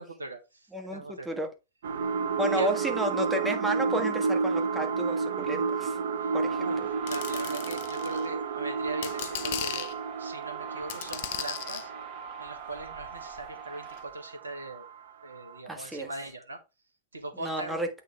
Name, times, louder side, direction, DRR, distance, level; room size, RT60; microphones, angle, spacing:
voice 1, 0.0-1.3 2.5-2.7 6.2-11.9 12.4-14.9 15.2-16.6 17.1-17.8, right 2 dB, 80° right, 1.3 m, -40 dB
voice 2, 0.7-1.5 2.4-6.0 6.3-6.6 15.7-16.1 17.4-17.9, right 1 dB, 5° right, 1.4 m, -32 dB
sound 1, 1.8-15.0 15.5-15.6, right 5 dB, 60° right, 0.6 m, -31 dB
sound 2, 6.3-14.0, right 5 dB, 45° right, 1.7 m, -46 dB
sound 3, 7.1-8.3 8.9-9.9 10.9-11.9 12.7-13.5 14.0-14.1, left 11 dB, 50° left, 0.5 m, -37 dB
8.1 x 4.4 x 3.3 m
figure-of-eight pair, 90°, 0 cm